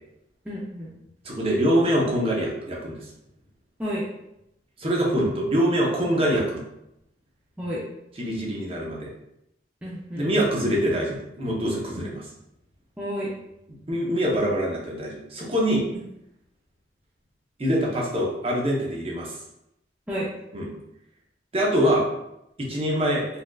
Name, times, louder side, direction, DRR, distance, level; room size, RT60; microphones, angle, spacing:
voice 1, 0.5-0.9 3.8-4.1 7.6-7.8 9.8-10.2 13.0-13.3 20.1-20.3, equal, 10° right, -7 dB, 0.4 m, -30 dB
voice 2, 1.2-2.9 4.8-6.6 8.1-9.1 10.1-12.3 13.9-15.8 17.6-19.3 20.5-20.7 21.5-22.0 22.6-23.3, equal, 30° right, -3 dB, 0.7 m, -24 dB
4.1 x 2.5 x 2.3 m, 0.84 s
head